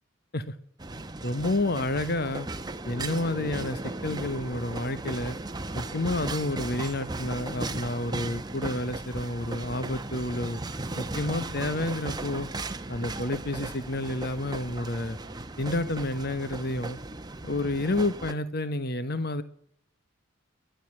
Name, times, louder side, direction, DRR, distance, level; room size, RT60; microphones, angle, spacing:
sound 1, 0.8-18.3, right 2 dB, 20° right, 0.9 m, -36 dB
voice 1, 1.2-2.5 2.8-5.4 5.7-10.6 11.0-12.5 12.9-15.2 15.6-17.0 17.4-19.4, left 2 dB, 50° left, 12 dB, 1.1 m, -30 dB
29.5 x 11.5 x 8.8 m, 0.72 s
head